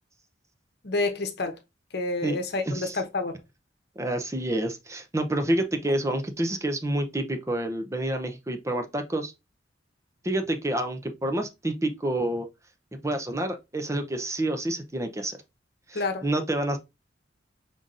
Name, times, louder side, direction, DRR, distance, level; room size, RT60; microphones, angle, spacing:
voice 1, 0.8-1.6 1.9-3.3 15.9-16.2, left 3 dB, 60° left, 0.9 m, -28 dB
voice 2, 2.7-3.0 4.0-9.3 10.2-12.5 13.0-15.4 15.9-16.8, right 1 dB, 15° right, 0.6 m, -28 dB
5.6 x 3.7 x 2.5 m
head